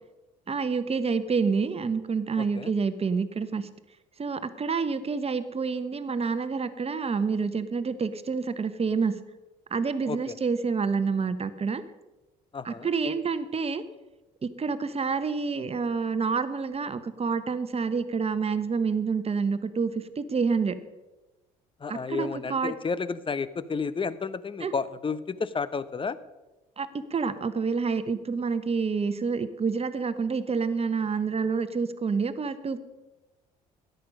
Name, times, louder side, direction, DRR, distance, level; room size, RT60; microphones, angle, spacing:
voice 1, 0.5-3.7 4.2-9.1 9.7-11.8 12.6-13.8 14.4-19.9 20.2-20.8 21.9-22.7 24.6-24.7 26.8-32.8, right 5 dB, 30° right, 12 dB, 1.1 m, -28 dB
voice 2, 2.4-2.7 10.0-10.3 12.5-12.9 21.8-26.2, left 5 dB, 25° left, 16 dB, 0.8 m, -31 dB
13.5 x 10.5 x 5.3 m, 1.1 s
hypercardioid pair, 60°, 20 cm